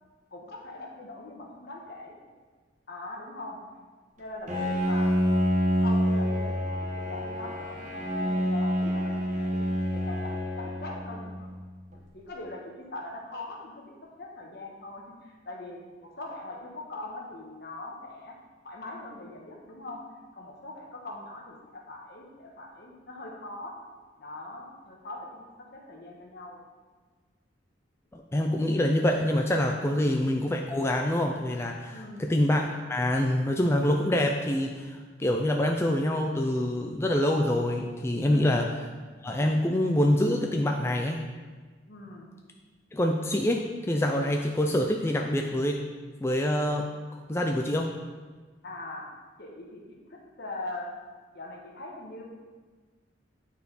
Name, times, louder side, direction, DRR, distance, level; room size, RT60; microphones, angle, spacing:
voice 1, 0.3-2.1 2.9-3.6 4.2-5.4 5.8-9.6 9.9-11.5 12.1-13.8 14.2-18.4 18.6-20.0 20.3-23.8 24.2-25.4 25.7-26.6 31.9-32.3 38.2-38.7 41.9-42.3 48.6-49.1 49.4-50.9 51.3-52.2, left 2 dB, 60° left, -1 dB, 1.3 m, -41 dB
Bowed string instrument, 4.5-11.6, equal, 40° right, 1.3 m, -27 dB
voice 2, 28.1-38.7 39.2-41.2 42.9-45.8 46.2-47.9, left 1 dB, 15° left, 2 dB, 0.4 m, -26 dB
9.5 x 4.2 x 4.2 m, 1.4 s
head